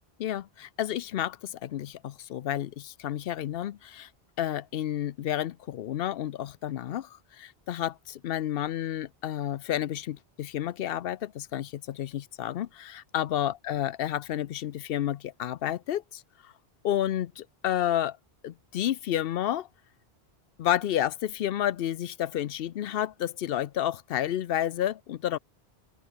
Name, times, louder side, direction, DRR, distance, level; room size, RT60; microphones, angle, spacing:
voice 1, 0.2-4.1 4.4-7.1 7.4-16.2 16.8-18.2 18.4-19.7 20.6-25.4, left 11 dB, 70° left, 0.8 m, -30 dB
open air
omnidirectional pair, 1.1 m